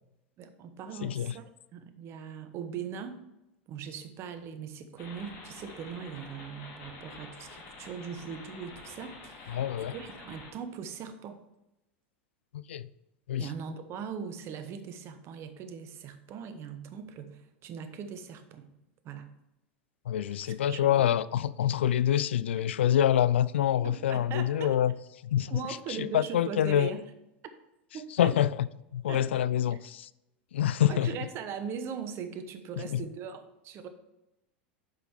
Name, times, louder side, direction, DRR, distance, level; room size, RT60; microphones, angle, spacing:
voice 1, 0.4-3.2 3.7-11.4 13.4-18.7 19.0-19.3 20.4-21.0 23.8-24.8 25.5-27.0 27.9-28.4 29.1-29.4 29.7-29.8 30.9-33.9, right 7 dB, 45° right, 1.0 m, -40 dB
voice 2, 1.0-1.3 9.5-9.9 12.5-12.9 13.3-13.5 20.1-24.9 25.2-25.5 25.9-26.9 28.2-28.7 28.9-30.1 30.5-31.1 32.9-33.0, left 10 dB, 85° left, 0.3 m, -26 dB
sound 1, 5.0-10.5, left 3 dB, 55° left, 3.1 m, -48 dB
7.4 x 5.5 x 4.8 m
hypercardioid pair, 95°, 6 cm